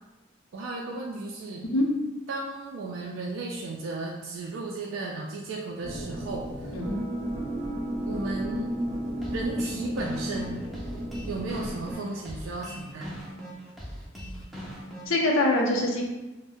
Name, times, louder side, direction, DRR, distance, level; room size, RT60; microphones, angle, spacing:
voice 1, 0.5-1.7 2.3-6.7 8.0-8.7 9.3-10.6 11.3-13.2, right 2 dB, 75° right, -1 dB, 0.3 m, -34 dB
sound 1, 5.8-12.0, equal, 30° right, 0.8 m, -33 dB
sound 2, 9.2-15.2, equal, ahead, 0.4 m, -40 dB
voice 2, 15.1-16.0, left 1 dB, 80° left, 0 dB, 0.6 m, -24 dB
2.5 x 2.1 x 3.5 m, 1.1 s
head